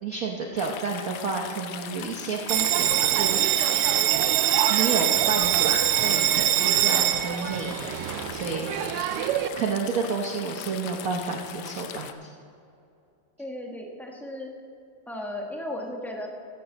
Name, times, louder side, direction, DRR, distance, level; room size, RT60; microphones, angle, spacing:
voice 1, 0.0-3.7 4.7-9.0 9.6-12.3, right 4 dB, 55° right, 1 dB, 1.0 m, -31 dB
sound 1, 0.6-12.1, left 9 dB, 80° left, 1.5 m, -40 dB
Bell, 2.5-9.5, right 12 dB, 90° right, 1.5 m, -23 dB
voice 2, 13.4-14.5 15.1-16.3, left 1 dB, ahead, 0 dB, 1.0 m, -35 dB
14.5 x 10.5 x 4.0 m, 2.6 s
omnidirectional pair, 2.4 m